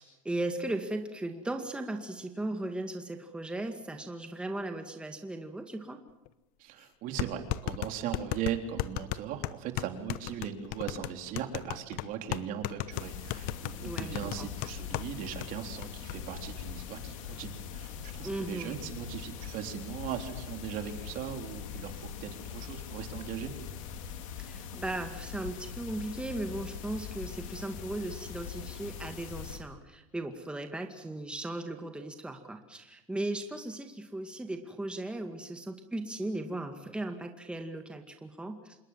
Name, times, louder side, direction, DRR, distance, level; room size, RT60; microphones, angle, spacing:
voice 1, 0.0-6.0 13.8-14.5 18.2-18.8 24.4-38.8, right 2 dB, 5° right, 5 dB, 2.1 m, -37 dB
sound 1, 6.3-6.4 7.2-15.1 15.4-15.5 15.8-16.2, left 15 dB, 60° left, 1.1 m, -35 dB
voice 2, 6.6-23.5, right 9 dB, 55° right, 5 dB, 3.6 m, -39 dB
sound 2, 12.9-29.6, left 8 dB, 85° left, 3.5 m, -42 dB
27.0 x 21.0 x 7.4 m, 0.98 s
supercardioid pair, 125°, 17 cm